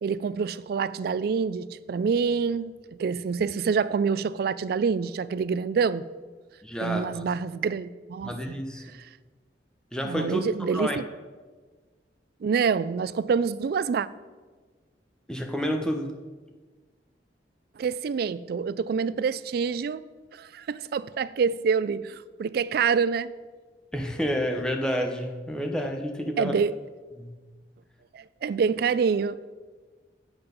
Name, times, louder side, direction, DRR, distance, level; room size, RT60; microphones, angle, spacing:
voice 1, 0.0-2.7 3.0-6.0 6.8-8.6 10.0-11.0 12.4-14.1 17.8-20.0 20.3-23.3 26.4-26.7 28.1-29.5, right 5 dB, 60° right, 0.3 m, -26 dB
voice 2, 6.6-7.2 8.2-8.8 9.9-10.4 10.7-11.0 15.3-16.1 23.9-26.6 27.2-27.3, equal, 5° left, 0.9 m, -29 dB
8.7 x 7.8 x 5.3 m
head